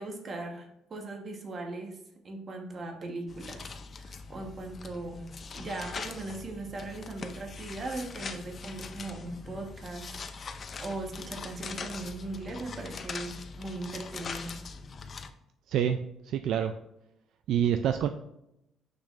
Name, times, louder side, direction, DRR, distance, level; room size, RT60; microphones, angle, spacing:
voice 1, 0.0-2.0 2.2-5.3 5.5-14.5, right 2 dB, 30° right, 3 dB, 1.1 m, -39 dB
sound 1, 3.3-15.3, left 4 dB, 30° left, 0.5 m, -42 dB
voice 2, 15.7-16.0 16.2-16.7 17.5-18.1, right 9 dB, 65° right, 8 dB, 0.3 m, -26 dB
6.5 x 6.1 x 2.5 m, 0.84 s
cardioid pair, 150°, 0 cm